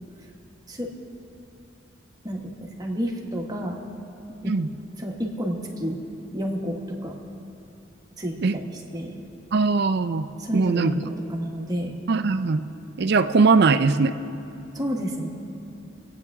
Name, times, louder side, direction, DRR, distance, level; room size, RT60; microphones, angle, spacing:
voice 1, 2.2-3.8 4.4-4.5 5.0-6.0 6.3-7.1 8.2-9.1 10.4-11.9 14.7-15.3, equal, 20° right, 0 dB, 1.5 m, -30 dB
voice 2, 9.5-10.3 10.5-10.9 12.1-12.6 13.0-14.2, right 4 dB, 60° right, 10 dB, 0.5 m, -20 dB
26.5 x 8.9 x 3.6 m, 2.8 s
head